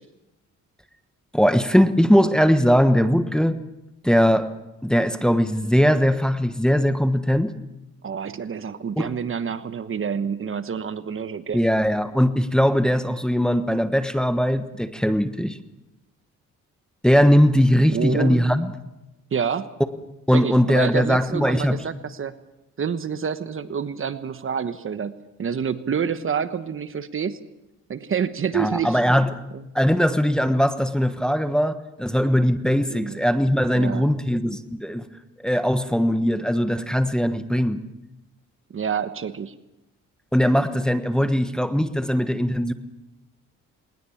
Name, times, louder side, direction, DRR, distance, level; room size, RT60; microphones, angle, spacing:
voice 1, 1.3-3.6 4.0-4.5 4.8-7.5 9.0-9.1 11.5-15.6 17.0-18.7 20.3-21.8 28.5-29.3 29.7-35.1 35.4-37.8 40.3-42.7, equal, ahead, 10 dB, 1.3 m, -20 dB
voice 2, 8.0-11.6 17.9-18.5 19.3-19.7 20.3-22.3 22.8-27.4 27.9-29.0 29.5-29.6 32.9-33.2 33.7-34.0 38.7-39.5, right 7 dB, 45° right, 12 dB, 1.2 m, -28 dB
20.5 x 20.0 x 7.3 m, 0.95 s
cardioid pair, 90°, 30 cm